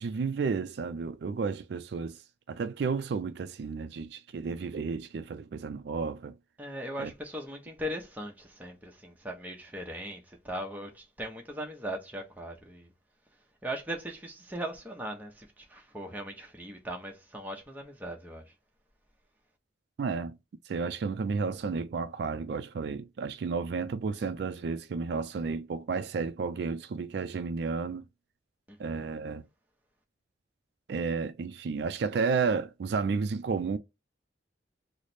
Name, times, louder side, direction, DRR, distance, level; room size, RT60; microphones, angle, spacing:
voice 1, 0.0-2.2 2.5-6.3 7.0-7.1 20.0-20.4 20.7-28.0 28.8-29.4 30.9-33.8, right 5 dB, 65° right, 0.3 m, -32 dB
voice 2, 6.6-12.9 13.6-18.4 28.7-29.0, equal, 10° right, 0.7 m, -39 dB
3.2 x 2.0 x 4.1 m
head